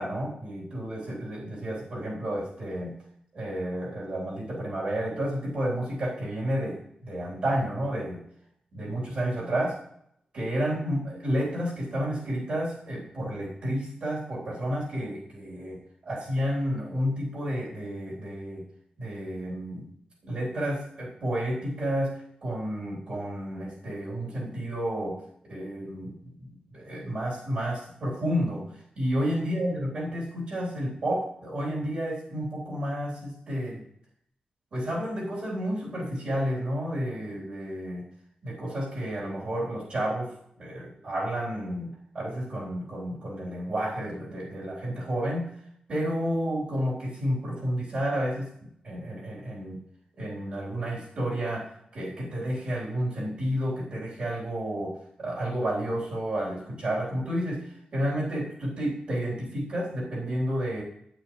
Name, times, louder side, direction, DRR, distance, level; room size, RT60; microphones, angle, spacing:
voice 1, 0.0-3.0 3.3-8.2 8.7-9.8 10.3-18.6 19.0-19.9 20.2-25.2 25.5-28.6 29.0-33.9 34.7-38.0 38.4-45.5 45.9-49.8 50.2-60.8, equal, 55° right, -5 dB, 3.5 m, -31 dB
12.0 x 9.3 x 3.2 m, 0.72 s
wide cardioid pair, 175°, 3 cm